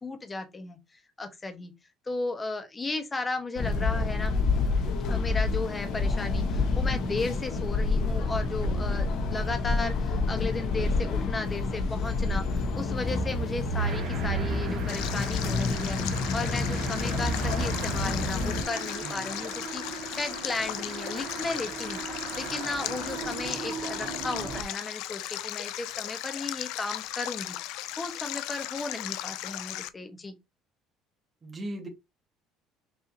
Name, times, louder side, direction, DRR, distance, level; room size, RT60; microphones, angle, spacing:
voice 1, 0.0-1.7 2.0-4.3 5.1-30.4, left 3 dB, 20° left, 0.9 m, -35 dB
sound 1, 3.6-18.6, left 3 dB, 60° left, 1.0 m, -28 dB
sound 2, 13.8-24.6, right 5 dB, 70° right, 1.8 m, -39 dB
Stream, 14.9-29.9, left 15 dB, 80° left, 0.3 m, -37 dB
voice 2, 31.4-31.9, right 1 dB, 20° right, 1.2 m, -38 dB
5.8 x 2.7 x 2.8 m
cardioid pair, 140°, 0 cm